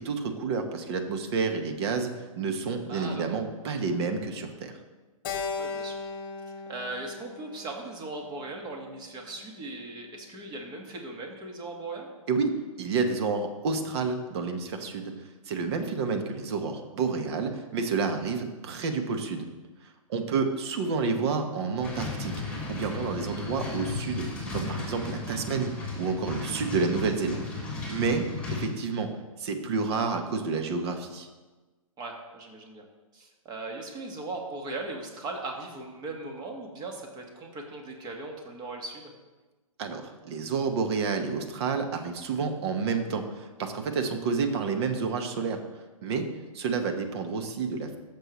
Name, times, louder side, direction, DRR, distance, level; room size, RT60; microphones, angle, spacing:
voice 1, 0.0-4.7 12.3-15.1 15.5-19.5 19.8-24.2 24.5-27.4 27.9-29.1 29.4-31.3 39.8-45.6 46.0-46.3 46.5-48.0, right 4 dB, 50° right, 6 dB, 1.3 m, -29 dB
voice 2, 2.9-3.4 5.6-6.0 6.7-12.1 28.6-28.7 32.0-32.9 33.1-39.1, right 2 dB, 25° right, 2 dB, 1.7 m, -38 dB
Keyboard (musical), 5.2-9.6, left 5 dB, 40° left, 1.2 m, -38 dB
sound 1, 21.8-28.7, left 3 dB, 5° left, 3.3 m, -35 dB
14.5 x 6.8 x 3.2 m, 1.2 s
hypercardioid pair, 125°, 18 cm